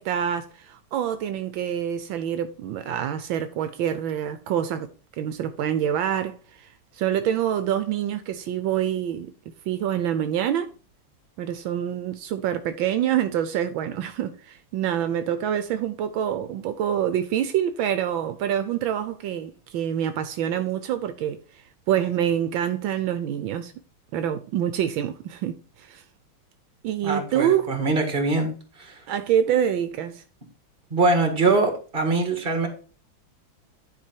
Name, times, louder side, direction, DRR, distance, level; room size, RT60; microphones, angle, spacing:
voice 1, 0.0-4.9 5.2-9.3 9.7-10.7 11.4-23.7 24.1-26.0 26.8-27.7 29.1-30.2, right 10 dB, 80° right, 1.4 m, -26 dB
voice 2, 27.0-28.5 28.8-29.0 30.9-32.7, right 3 dB, 25° right, 1.9 m, -23 dB
10.5 x 4.9 x 4.5 m
omnidirectional pair, 2.2 m